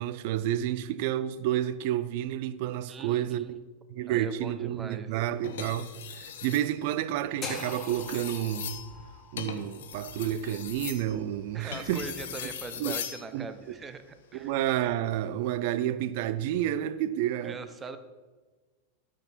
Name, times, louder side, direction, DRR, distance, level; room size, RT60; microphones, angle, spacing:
voice 1, 0.0-3.6 3.9-8.8 9.3-12.1 12.8-13.0 13.3-13.5 14.3-17.6, right 12 dB, 50° right, 0.5 m, -30 dB
voice 2, 2.9-3.6 4.1-5.2 11.5-14.5 17.4-18.0, right 4 dB, 20° right, 0.7 m, -41 dB
sound 1, 5.4-6.7 7.3-13.2 14.7-14.9, left 8 dB, 60° left, 1.0 m, -40 dB
sound 2, 7.4-11.5, left 3 dB, 20° left, 2.2 m, -43 dB
13.0 x 6.3 x 4.3 m
figure-of-eight pair, 90°, 0 cm